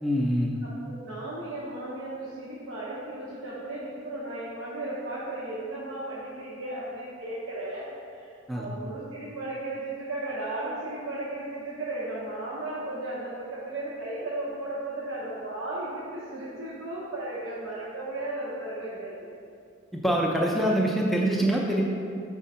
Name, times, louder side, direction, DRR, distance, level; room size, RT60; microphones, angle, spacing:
voice 1, 0.0-0.5 8.5-8.7 19.9-21.8, right 1 dB, ahead, -2 dB, 0.4 m, -24 dB
voice 2, 0.6-19.3, right 2 dB, 75° right, -8 dB, 0.9 m, -35 dB
5.0 x 3.7 x 5.5 m, 2.4 s
head